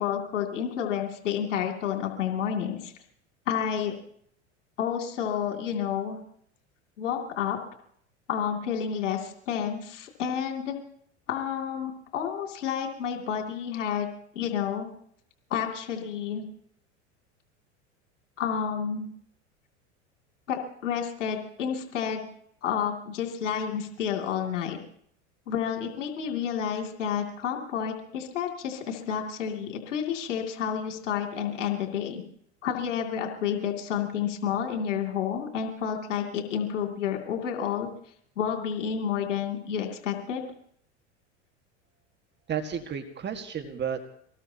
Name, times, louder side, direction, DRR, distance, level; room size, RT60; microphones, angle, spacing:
voice 1, 0.0-2.9 3.5-3.9 4.8-6.2 7.0-7.6 8.3-10.8 11.3-14.1 14.3-14.9 15.5-16.4 18.4-19.1 20.5-22.3 22.6-24.8 25.5-32.2 32.6-37.9 38.4-40.4, left 8 dB, 80° left, 2 dB, 2.8 m, -30 dB
voice 2, 42.5-44.1, right 7 dB, 30° right, 5 dB, 1.8 m, -32 dB
24.5 x 20.0 x 2.9 m, 0.65 s
hypercardioid pair, 95°, 36 cm